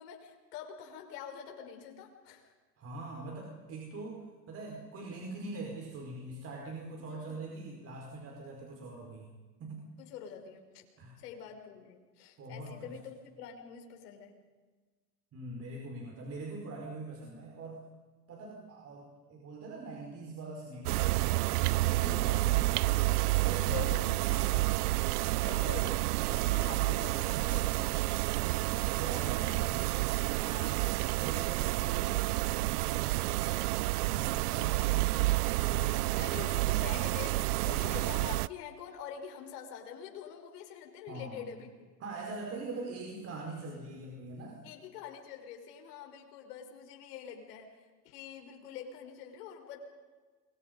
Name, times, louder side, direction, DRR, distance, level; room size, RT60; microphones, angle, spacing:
voice 1, 0.0-2.5 7.0-7.5 10.0-10.8 11.2-14.4 21.8-23.1 23.6-24.8 25.2-28.0 30.4-31.1 36.2-41.9 44.6-49.8, left 8 dB, 65° left, 4 dB, 6.0 m, -46 dB
voice 2, 2.8-9.3 9.6-9.9 11.0-11.2 12.4-12.9 15.3-17.8 18.3-21.1 22.0-22.7 23.4-23.8 28.7-29.9 31.2-35.2 35.6-36.4 36.8-37.0 41.1-41.4 42.0-44.6, right 3 dB, 30° right, 0 dB, 5.1 m, -43 dB
sound 1, 20.8-38.5, right 19 dB, 65° right, 0.6 m, -29 dB
29.0 x 24.0 x 5.4 m, 1.3 s
supercardioid pair, 130°, 50 cm